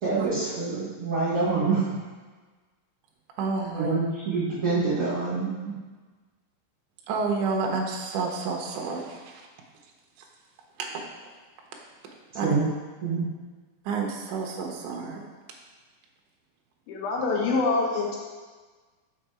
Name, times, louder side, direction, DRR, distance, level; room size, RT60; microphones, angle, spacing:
voice 1, 0.0-2.0 3.8-5.7 12.4-12.6 13.0-13.3, right 4 dB, 45° right, -12 dB, 1.9 m, -26 dB
voice 2, 3.4-3.9 7.1-9.5 10.8-11.0 12.3-12.5 13.9-15.2, right 4 dB, 75° right, 1 dB, 1.9 m, -30 dB
voice 3, 16.9-18.2, left 3 dB, 75° left, -1 dB, 2.5 m, -25 dB
6.0 x 4.2 x 4.8 m, 1.3 s
omnidirectional pair, 4.5 m